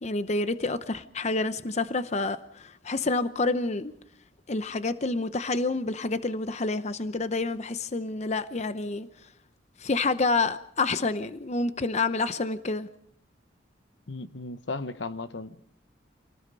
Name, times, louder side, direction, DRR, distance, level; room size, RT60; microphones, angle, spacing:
voice 1, 0.0-3.9 4.5-9.3 9.8-12.9, left 3 dB, 35° left, 0.7 m, -28 dB
voice 2, 14.1-15.6, left 3 dB, 70° left, 1.0 m, -35 dB
27.5 x 18.5 x 5.4 m
head